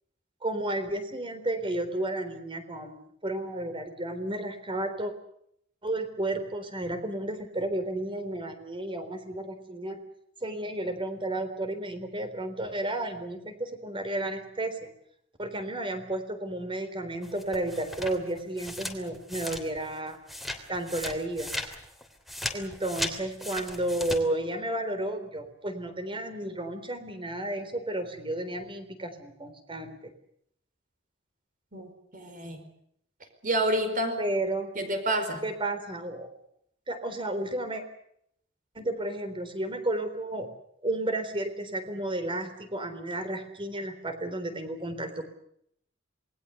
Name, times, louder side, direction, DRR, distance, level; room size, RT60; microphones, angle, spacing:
voice 1, 0.4-5.1 5.8-10.0 10.4-14.9 15.4-20.2 20.7-21.5 22.5-30.1 34.2-34.7 35.4-36.3 36.9-37.8 38.8-40.5 40.8-45.3, right 1 dB, 25° right, 9 dB, 3.8 m, -32 dB
sound 1, 17.2-20.0 20.3-24.2, left 1 dB, ahead, 3.1 m, -37 dB
voice 2, 31.7-32.6 33.4-34.2 34.7-35.4, right 1 dB, 45° right, 7 dB, 4.9 m, -29 dB
27.5 x 20.5 x 7.0 m, 0.71 s
head